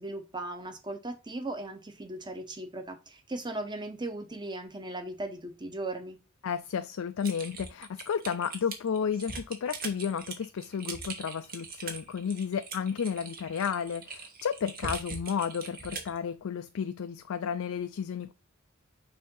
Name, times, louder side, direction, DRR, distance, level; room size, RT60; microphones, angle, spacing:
voice 1, 0.0-6.2, right 2 dB, 20° right, 1.0 m, -38 dB
voice 2, 6.4-18.3, left 7 dB, 85° left, 0.4 m, -32 dB
Typing, 7.2-16.2, right 4 dB, 45° right, 1.3 m, -41 dB
6.4 x 2.8 x 5.4 m
head